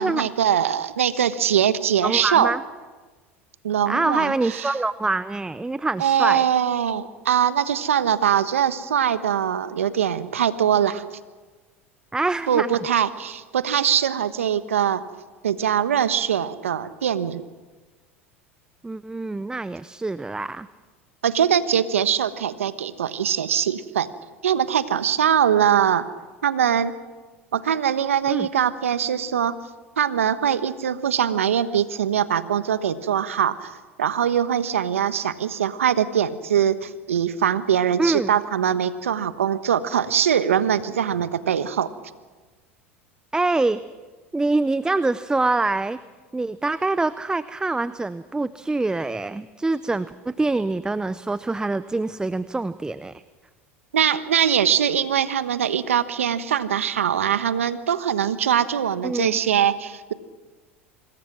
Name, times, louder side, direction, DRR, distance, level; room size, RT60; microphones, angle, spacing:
voice 1, 0.0-2.5 3.6-4.7 6.0-11.0 12.5-15.0 15.4-17.4 21.2-24.1 24.4-26.1 26.4-26.9 27.5-29.5 30.0-41.9 53.9-60.1, right 9 dB, 85° right, 13 dB, 1.1 m, -22 dB
voice 2, 2.0-2.6 3.9-6.4 12.1-12.8 18.8-20.7 28.3-28.5 38.0-38.3 43.3-43.8 44.3-46.0 46.3-53.2 59.0-59.4, right 3 dB, 10° right, 15 dB, 0.7 m, -25 dB
26.0 x 21.0 x 6.1 m, 1.3 s
hypercardioid pair, 85°, 7 cm